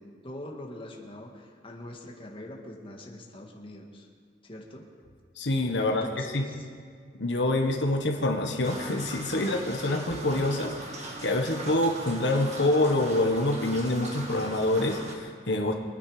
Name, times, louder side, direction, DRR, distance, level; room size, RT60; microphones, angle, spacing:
voice 1, 0.0-4.1 4.4-4.9 5.8-6.7, left 1 dB, 30° left, 0 dB, 1.8 m, -43 dB
voice 2, 5.4-6.5 7.2-15.7, left 1 dB, 75° left, 2 dB, 1.4 m, -26 dB
sound 1, 8.6-15.2, right 1 dB, 40° right, 1.7 m, -40 dB
24.5 x 9.8 x 5.0 m, 2.1 s
head